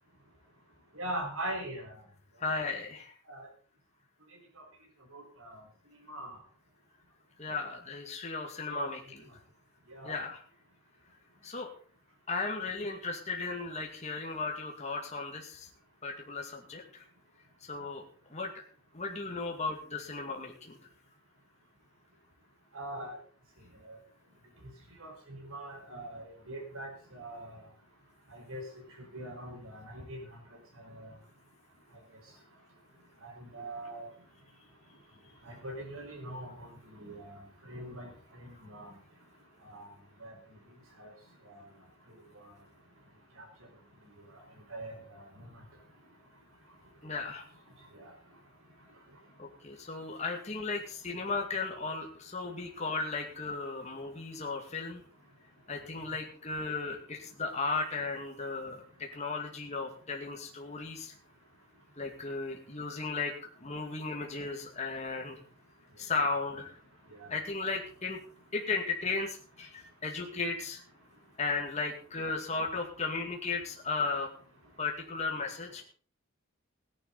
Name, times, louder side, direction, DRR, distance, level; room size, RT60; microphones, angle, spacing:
voice 1, 0.9-1.9 3.3-3.5 5.1-5.6 6.1-6.4 8.7-8.9 9.9-10.2 22.7-23.2 23.8-24.0 25.0-27.6 28.3-28.6 29.1-30.2 30.8-31.1 33.2-34.1 35.4-38.9 39.6-39.9 40.2-40.3 41.0-41.1 41.4-41.6 44.7-45.5 47.9-48.1 67.2-67.3, right 1 dB, 80° right, 2 dB, 5.1 m, -42 dB
voice 2, 2.4-3.1 7.4-9.3 10.0-10.4 11.4-11.7 12.3-15.7 16.0-17.0 17.6-18.0 18.3-18.6 18.9-20.8 47.0-47.5 49.4-55.0 55.7-61.2 62.0-63.3 63.6-65.4 66.0-66.8 67.3-68.2 68.5-70.8 71.4-74.3 74.8-75.8, left 4 dB, 30° left, 1 dB, 2.1 m, -35 dB
17.0 x 11.0 x 4.1 m, 0.43 s
head